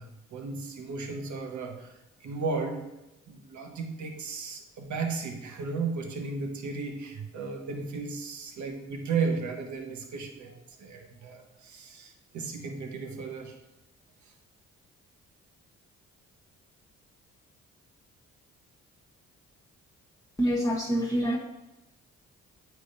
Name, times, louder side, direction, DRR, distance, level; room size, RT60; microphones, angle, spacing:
voice 1, 0.0-1.9 2.2-2.8 3.3-13.6, right 4 dB, 60° right, 3 dB, 1.1 m, -34 dB
voice 2, 20.4-21.4, equal, 10° left, -3 dB, 1.0 m, -26 dB
8.1 x 4.7 x 2.6 m, 0.95 s
supercardioid pair, 50°, 32 cm